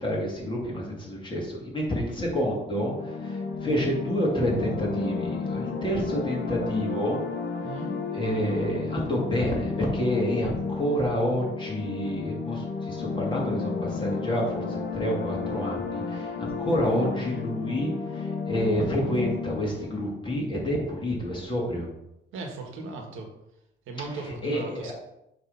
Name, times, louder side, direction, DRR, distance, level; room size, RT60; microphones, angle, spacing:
voice 1, 0.0-7.2 7.6-7.9 8.1-21.9 24.2-24.9, equal, 25° left, -3 dB, 2.6 m, -29 dB
sound 1, 2.6-20.0, left 4 dB, 60° left, 1.1 m, -32 dB
voice 2, 7.6-7.9 22.3-23.3 23.9-24.9, right 3 dB, 90° right, 2 dB, 1.7 m, -37 dB
7.1 x 3.6 x 5.7 m, 0.85 s
cardioid pair, 90°, 20 cm